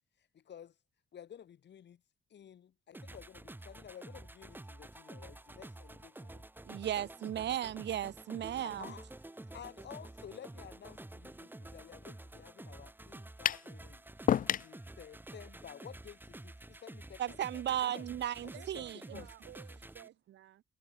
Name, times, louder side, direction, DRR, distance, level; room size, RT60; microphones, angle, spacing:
voice 1, 0.2-0.8 1.1-2.0 2.3-6.5 8.6-9.1 9.5-14.0 14.4-18.1 18.4-18.8 19.1-19.3, left 9 dB, 60° left, 7.1 m, -52 dB
sound 1, 2.9-20.1, right 1 dB, 10° right, 1.9 m, -50 dB
voice 2, 6.6-8.9 17.2-19.2, right 11 dB, 60° right, 1.1 m, -36 dB
sound 2, 13.4-13.7 14.3-14.7, left 10 dB, 45° left, 0.4 m, -29 dB
voice 3, 18.5-20.6, right 13 dB, 80° right, 6.0 m, -54 dB
cardioid pair, 90°, 20 cm